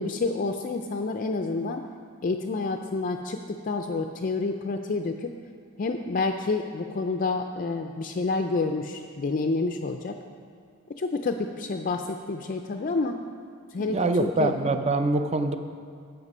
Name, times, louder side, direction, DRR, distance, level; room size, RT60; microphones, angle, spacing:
voice 1, 0.0-1.8 2.2-5.3 5.8-10.2 10.9-13.2 13.7-14.5, left 3 dB, 40° left, 5 dB, 0.4 m, -29 dB
voice 2, 13.8-15.6, right 2 dB, 30° right, 8 dB, 0.5 m, -24 dB
11.0 x 7.9 x 5.5 m, 2.4 s
head